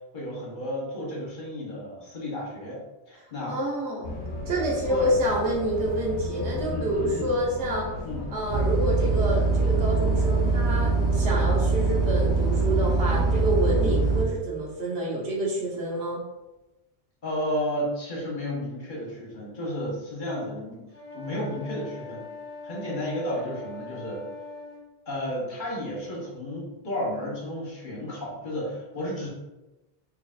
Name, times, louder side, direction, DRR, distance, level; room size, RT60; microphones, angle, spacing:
voice 1, 0.1-2.8 3.1-3.6 4.9-5.1 6.5-7.3 8.0-8.2 13.8-14.0 17.2-20.8 21.1-22.3 22.6-24.2 25.1-29.3, equal, 50° left, -5 dB, 1.3 m, -32 dB
voice 2, 3.5-4.2 4.4-7.9 8.3-16.2, right 1 dB, 90° right, -3 dB, 1.2 m, -28 dB
sound 1, 4.0-13.9, left 2 dB, 80° left, 0.9 m, -36 dB
sound 2, 8.5-14.2, right 4 dB, 40° right, 0.4 m, -23 dB
sound 3, 20.9-24.9, left 3 dB, 15° right, 1.4 m, -41 dB
4.0 x 3.2 x 2.4 m, 1.0 s
omnidirectional pair, 1.1 m